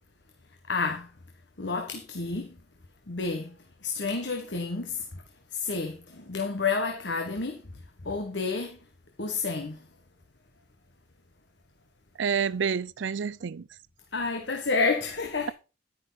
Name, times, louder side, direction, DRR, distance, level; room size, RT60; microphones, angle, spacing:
voice 1, 0.7-1.1 1.6-2.5 3.1-3.5 3.8-5.1 5.5-7.6 8.0-8.8 9.2-9.8 14.1-15.5, left 4 dB, 70° left, 1.5 m, -30 dB
voice 2, 12.2-13.7, right 6 dB, 85° right, 0.5 m, -28 dB
11.0 x 10.0 x 4.1 m
head